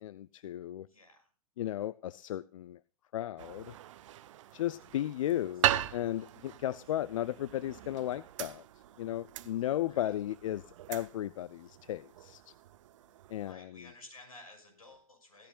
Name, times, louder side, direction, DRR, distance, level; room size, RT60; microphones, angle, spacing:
voice 1, 0.0-0.9 1.6-2.8 3.1-3.7 4.5-8.6 9.0-12.5 13.3-13.9, left 13 dB, 65° left, 19 dB, 0.5 m, -35 dB
voice 2, 0.9-1.3 9.5-10.1 13.0-15.5, left 2 dB, 85° left, 3 dB, 6.0 m, -55 dB
sound 1, 3.4-13.5, right 13 dB, 60° right, 0.8 m, -39 dB
16.0 x 14.5 x 2.4 m, 0.36 s
figure-of-eight pair, 95°, 18 cm